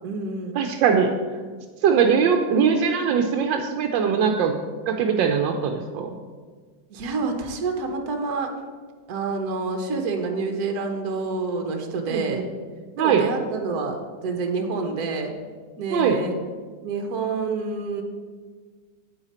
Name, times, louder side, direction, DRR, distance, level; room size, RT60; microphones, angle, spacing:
voice 1, 0.0-0.6 6.9-8.5 9.1-12.4 13.0-14.0 14.2-15.3 15.8-16.3 16.8-18.0, right 4 dB, 60° right, 3 dB, 1.5 m, -28 dB
voice 2, 0.5-1.1 1.8-4.5 4.9-6.1 12.1-12.4 13.0-13.3 15.9-16.2, right 6 dB, 85° right, 4 dB, 1.4 m, -21 dB
9.1 x 8.8 x 4.3 m, 1.5 s
omnidirectional pair, 2.0 m